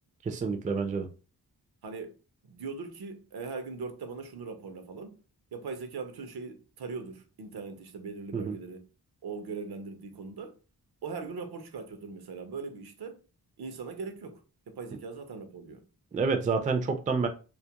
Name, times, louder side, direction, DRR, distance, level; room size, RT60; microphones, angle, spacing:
voice 1, 0.2-1.1 8.3-8.6 16.1-17.3, right 4 dB, 20° right, 0.3 m, -28 dB
voice 2, 1.8-2.2 2.4-5.2 5.5-8.8 9.2-10.5 11.0-13.2 13.6-14.4 14.7-15.8, right 4 dB, 75° right, 0.6 m, -40 dB
2.3 x 2.1 x 2.8 m
wide cardioid pair, 75°, 38 cm